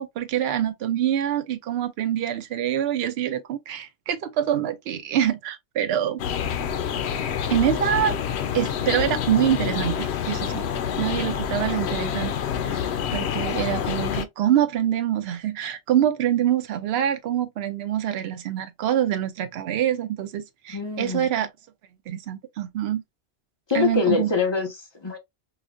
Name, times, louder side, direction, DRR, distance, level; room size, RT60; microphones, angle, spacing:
voice 1, 0.0-6.2 7.5-8.2 8.5-10.6 11.0-12.3 12.6-12.8 13.1-21.5 22.1-23.0 23.7-24.3, right 10 dB, 70° right, 0.8 m, -25 dB
sound 1, 6.2-14.3, left 8 dB, 80° left, 0.8 m, -27 dB
voice 2, 20.7-21.3 23.7-25.2, left 5 dB, 25° left, 1.0 m, -25 dB
4.8 x 2.1 x 2.4 m
omnidirectional pair, 1.1 m